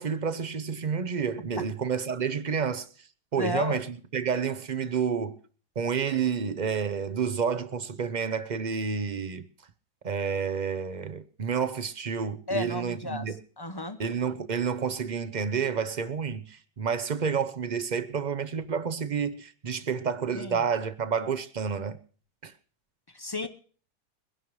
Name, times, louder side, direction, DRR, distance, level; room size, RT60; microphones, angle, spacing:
voice 1, 0.0-2.9 3.3-5.4 5.8-9.4 10.0-13.4 14.0-22.0 22.4-22.5, right 6 dB, 45° right, 0.5 m, -29 dB
voice 2, 3.4-3.8 12.5-13.3 13.6-14.0 20.3-20.7 23.1-23.5, left 2 dB, 25° left, 0.5 m, -32 dB
23.0 x 11.0 x 3.2 m
omnidirectional pair, 1.8 m